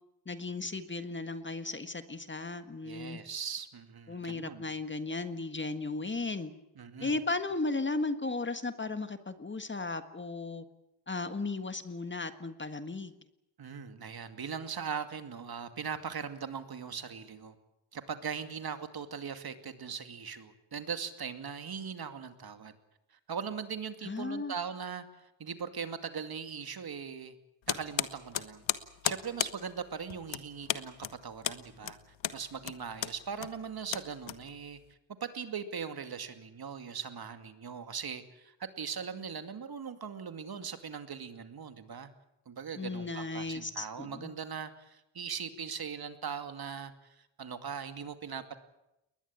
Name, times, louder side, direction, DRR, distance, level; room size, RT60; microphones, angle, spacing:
voice 1, 0.2-3.2 4.1-6.5 7.0-10.6 11.1-13.1 24.0-24.5 42.8-44.3, left 3 dB, 25° left, 10 dB, 1.6 m, -35 dB
voice 2, 2.8-4.7 6.8-7.2 13.6-17.6 17.9-22.8 23.3-27.4 27.7-28.6 29.0-31.0 31.2-34.8 35.2-42.1 42.5-48.5, right 6 dB, 50° right, 8 dB, 2.4 m, -40 dB
sound 1, 27.7-34.9, left 10 dB, 70° left, 1.4 m, -36 dB
21.0 x 20.5 x 8.8 m, 0.88 s
cardioid pair, 90°, 47 cm